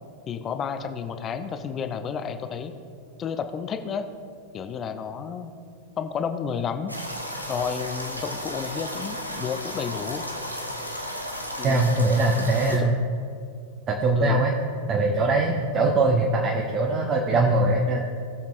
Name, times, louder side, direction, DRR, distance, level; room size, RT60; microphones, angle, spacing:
voice 1, 0.3-2.7 3.2-4.1 4.5-5.5 6.0-6.9 7.5-10.2 11.6-11.9 12.7-12.9 14.2-14.4, left 7 dB, 25° left, 8 dB, 0.6 m, -31 dB
sound 1, 6.9-12.8, equal, 90° right, 0.9 m, -34 dB
voice 2, 11.6-13.0 13.9-14.5 14.9-18.0, right 2 dB, 30° right, 0 dB, 1.0 m, -22 dB
19.5 x 7.2 x 2.5 m, 2.3 s
figure-of-eight pair, 90°, 0 cm